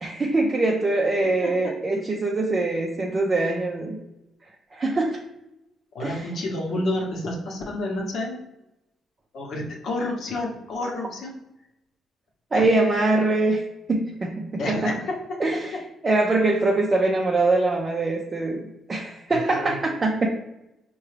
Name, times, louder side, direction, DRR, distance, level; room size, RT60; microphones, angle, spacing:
voice 1, 0.0-4.0 4.7-5.2 6.0-6.3 12.5-13.6 13.9-14.9 15.4-15.8 16.0-18.6 18.9-20.3, right 2 dB, 30° right, -1 dB, 0.4 m, -23 dB
voice 2, 1.2-1.7 5.9-8.4 9.3-11.3 12.5-12.7 14.6-15.4 15.7-15.8 19.3-19.8, left 1 dB, 65° left, 0 dB, 0.9 m, -30 dB
4.6 x 2.2 x 3.2 m, 0.91 s
cardioid pair, 90°, 0 cm